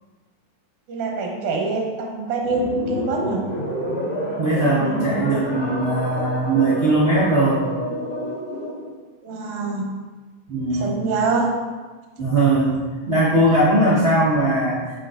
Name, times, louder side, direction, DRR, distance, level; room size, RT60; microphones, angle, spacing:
voice 1, 0.9-3.4 9.2-9.9 10.7-11.5, right 3 dB, 80° right, -1 dB, 2.3 m, -25 dB
sound 1, 2.4-8.9, equal, 40° left, 0.9 m, -29 dB
voice 2, 4.4-7.6 10.5-10.9 12.2-12.8 13.1-14.8, right 2 dB, 55° right, -9 dB, 0.7 m, -19 dB
7.4 x 7.4 x 2.5 m, 1.3 s
omnidirectional pair, 3.5 m